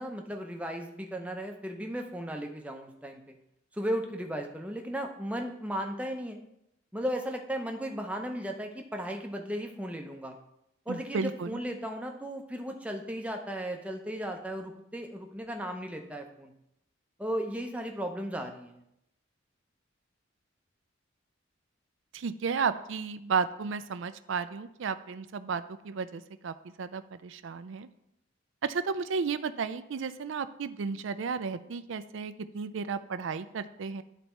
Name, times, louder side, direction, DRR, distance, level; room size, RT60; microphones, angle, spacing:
voice 1, 0.0-3.3 3.7-6.4 6.9-10.3 10.9-16.5 17.2-18.8, equal, 5° right, 3 dB, 0.6 m, -35 dB
voice 2, 10.9-11.6 22.1-27.9 28.6-34.0, right 5 dB, 70° right, 12 dB, 0.4 m, -33 dB
10.5 x 4.1 x 4.4 m, 0.82 s
head